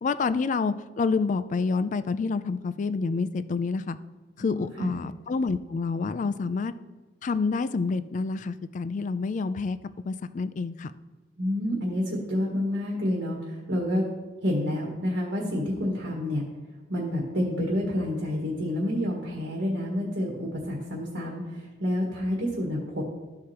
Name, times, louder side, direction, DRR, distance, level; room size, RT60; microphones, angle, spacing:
voice 1, 0.0-4.0 4.4-6.7 7.2-9.8 10.1-10.9, left 4 dB, 40° left, 13 dB, 0.3 m, -28 dB
voice 2, 4.4-4.9 11.4-14.0 14.4-16.4 16.9-23.0, left 1 dB, 80° right, -2 dB, 1.6 m, -29 dB
13.5 x 4.8 x 2.9 m, 1.2 s
head